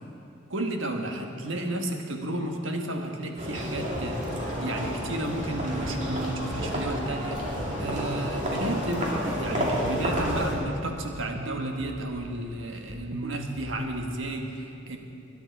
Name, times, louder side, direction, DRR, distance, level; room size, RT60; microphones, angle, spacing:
voice 1, 0.5-15.0, right 1 dB, 80° right, 3 dB, 1.4 m, -32 dB
sound 1, 3.4-10.6, equal, 40° right, 2.6 m, -30 dB
sound 2, 6.1-14.4, right 2 dB, 55° right, 0.6 m, -41 dB
21.0 x 10.5 x 4.7 m, 2.6 s
head